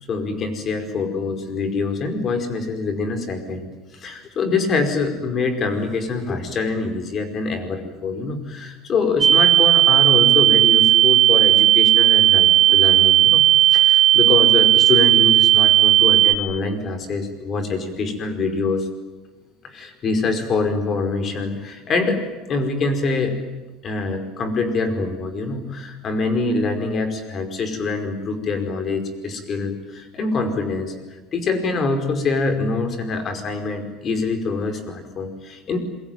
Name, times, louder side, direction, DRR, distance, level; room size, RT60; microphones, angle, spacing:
voice 1, 0.1-3.6 3.9-18.9 19.6-23.3 23.8-35.8, left 4 dB, 35° left, 8 dB, 5.0 m, -25 dB
sound 1, 9.2-16.4, right 13 dB, 20° right, 2.0 m, -14 dB
27.5 x 22.5 x 9.4 m, 1.2 s
cardioid pair, 150°, 0 cm